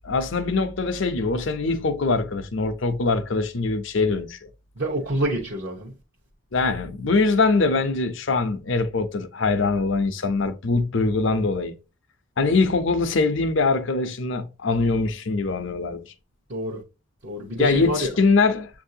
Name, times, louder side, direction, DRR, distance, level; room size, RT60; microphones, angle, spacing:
voice 1, 0.0-4.4 6.5-11.7 12.4-16.0 17.6-18.7, left 3 dB, 60° left, 0.6 m, -23 dB
voice 2, 4.8-5.9 16.5-16.8 17.2-18.2, right 1 dB, 50° right, 0.9 m, -27 dB
7.2 x 2.6 x 2.7 m
head